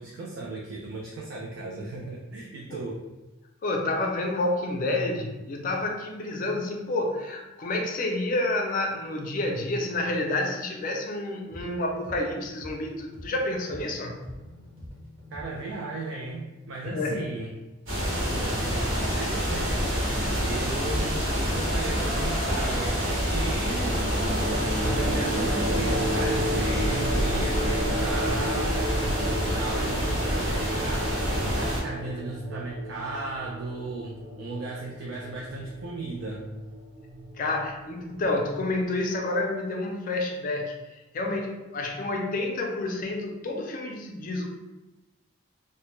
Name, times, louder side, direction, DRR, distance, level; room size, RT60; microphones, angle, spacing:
voice 1, 0.0-3.0 15.3-17.5 18.2-24.0 24.8-36.4 43.5-43.6 43.9-44.0, right 3 dB, 70° right, -2 dB, 0.3 m, -36 dB
voice 2, 3.6-14.2 16.9-17.2 20.1-20.3 37.4-44.5, left 2 dB, 40° left, 2 dB, 0.4 m, -29 dB
sound 1, 11.5-16.0, left 1 dB, 25° right, 0.7 m, -46 dB
sound 2, 17.9-31.8, equal, 85° right, 1.0 m, -27 dB
sound 3, 23.5-38.4, equal, 55° right, 0.9 m, -33 dB
2.1 x 2.1 x 2.9 m, 1.1 s
head